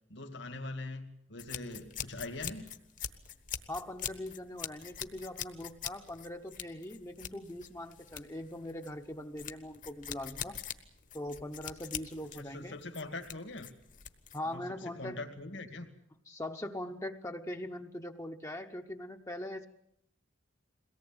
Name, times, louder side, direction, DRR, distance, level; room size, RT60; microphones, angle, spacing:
voice 1, 0.1-2.7 12.3-13.7 14.4-15.9, left 2 dB, 70° left, 4 dB, 2.4 m, -42 dB
sound 1, 1.4-14.5, left 9 dB, 40° left, 1.3 m, -43 dB
voice 2, 3.7-10.6 11.1-12.7 14.3-15.2 16.3-19.7, left 1 dB, 15° left, 4 dB, 0.9 m, -41 dB
22.5 x 18.0 x 8.9 m, 0.77 s
head